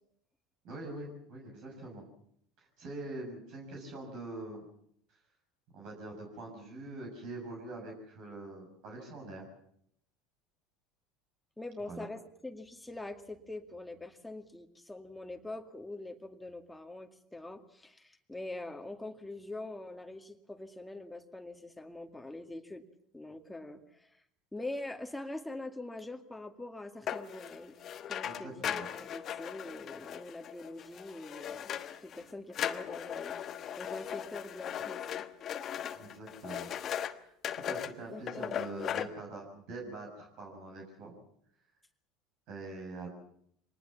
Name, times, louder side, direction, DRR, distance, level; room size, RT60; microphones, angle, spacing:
voice 1, 0.6-2.1 2.6-4.6 5.7-9.5 11.9-12.0 28.2-28.9 35.9-41.2 42.5-43.1, right 2 dB, 55° right, 1 dB, 6.3 m, -44 dB
voice 2, 11.6-22.8 23.1-24.2 24.5-27.7 28.1-31.7 32.0-35.2 38.1-38.6, left 2 dB, 10° left, 5 dB, 2.2 m, -44 dB
sound 1, 27.1-32.2 32.5-37.1 37.4-37.9 38.3-39.1, left 9 dB, 45° left, 1.3 m, -38 dB
24.0 x 19.5 x 7.2 m, 0.69 s
hypercardioid pair, 75°, 0 cm